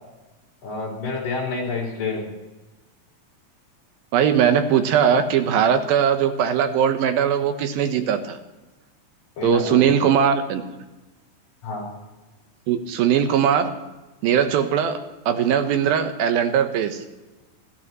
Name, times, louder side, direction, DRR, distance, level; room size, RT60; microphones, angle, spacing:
voice 1, 0.6-2.2 9.4-10.0 11.6-11.9, left 4 dB, 70° left, -3 dB, 6.0 m, -28 dB
voice 2, 4.1-8.4 9.4-10.6 12.7-13.7 14.2-15.0 15.3-17.0, right 8 dB, 85° right, 8 dB, 2.9 m, -20 dB
29.5 x 12.5 x 3.1 m, 1.1 s
omnidirectional pair, 4.1 m